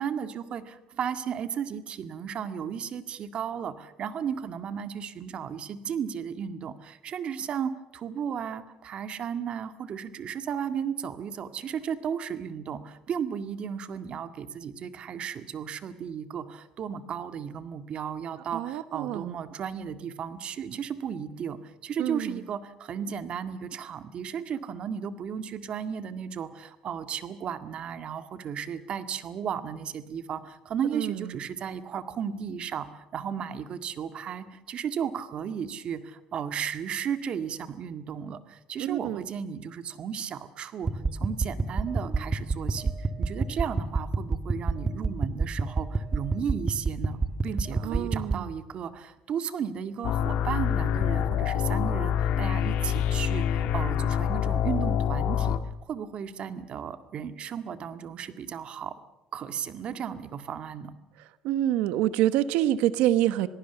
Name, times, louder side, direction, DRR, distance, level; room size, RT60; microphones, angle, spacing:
voice 1, 0.0-55.6 55.9-58.9 59.3-60.9, right 7 dB, 55° right, 10 dB, 1.9 m, -34 dB
voice 2, 18.5-19.3 22.0-22.3 30.9-31.2 38.8-39.2 47.8-48.5 61.4-63.5, right 13 dB, 90° right, 14 dB, 1.0 m, -26 dB
sound 1, 40.8-48.4, right 3 dB, 25° right, 1.7 m, -29 dB
sound 2, 50.0-55.6, left 9 dB, 75° left, 1.7 m, -26 dB
27.0 x 18.5 x 7.0 m, 0.96 s
cardioid pair, 110°, 2 cm